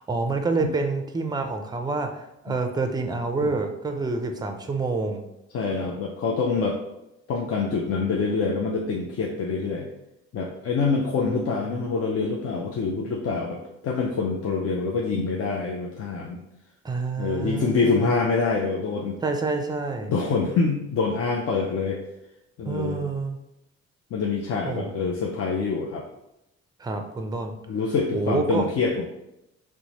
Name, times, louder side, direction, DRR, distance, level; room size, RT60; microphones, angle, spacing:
voice 1, 0.0-5.2 11.3-11.4 11.7-11.8 16.8-18.1 19.2-20.1 22.7-23.4 24.7-24.9 26.8-27.6 28.1-28.6, right 3 dB, 15° right, 5 dB, 0.4 m, -28 dB
voice 2, 5.5-6.8 7.3-9.9 10.3-16.4 17.2-19.2 20.0-22.0 22.6-23.0 24.1-26.1 27.7-29.0, left 4 dB, 50° left, 0 dB, 0.5 m, -26 dB
3.0 x 2.1 x 4.0 m, 0.88 s
cardioid pair, 90°, 30 cm